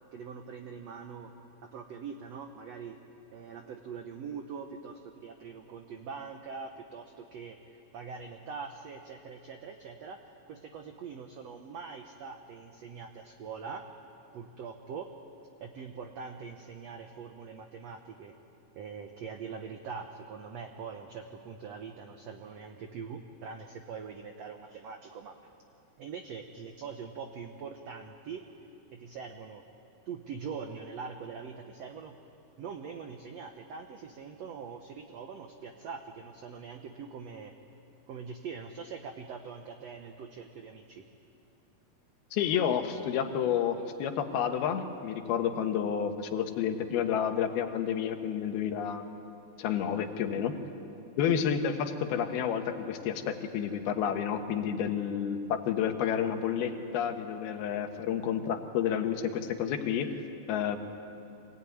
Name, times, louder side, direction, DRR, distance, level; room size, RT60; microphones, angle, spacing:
voice 1, 0.1-1.3 1.6-3.0 3.3-10.2 10.5-13.9 14.3-15.1 15.6-18.3 18.7-25.4 26.0-28.5 28.9-29.6 30.1-32.2 32.6-37.5 38.1-41.0, right 6 dB, 90° right, 5 dB, 1.4 m, -43 dB
voice 2, 42.3-49.0 49.6-50.5 51.2-60.1 60.5-60.8, left 8 dB, 80° left, 6 dB, 3.2 m, -30 dB
24.5 x 18.0 x 9.4 m, 2.8 s
omnidirectional pair, 4.4 m